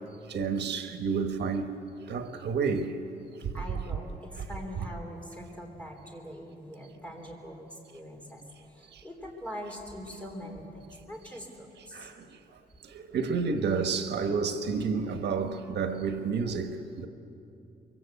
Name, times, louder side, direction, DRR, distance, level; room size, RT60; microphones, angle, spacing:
voice 1, 0.0-1.8 2.1-3.5 8.9-9.0 10.4-10.5 11.9-12.4 12.8-17.1, right 5 dB, 80° right, 1.4 m, -31 dB
voice 2, 3.5-12.1, equal, 5° left, 3.6 m, -43 dB
24.0 x 23.5 x 8.3 m
wide cardioid pair, 180°, 17 cm